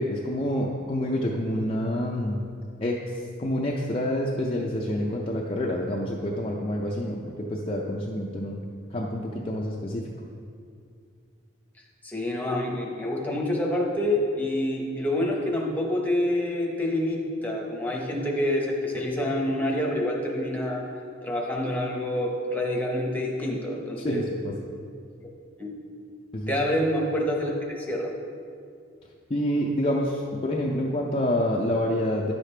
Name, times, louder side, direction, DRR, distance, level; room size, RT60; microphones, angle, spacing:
voice 1, 0.0-2.4 2.8-3.0 3.4-8.6 8.9-10.1 24.0-24.5 26.3-26.5 29.3-32.3, left 1 dB, 25° left, -2 dB, 0.5 m, -27 dB
voice 2, 12.0-20.8 21.2-24.2 25.2-25.3 25.6-25.7 26.5-28.1, left 1 dB, 10° left, -2 dB, 0.9 m, -27 dB
10.5 x 6.6 x 3.3 m, 2.3 s
head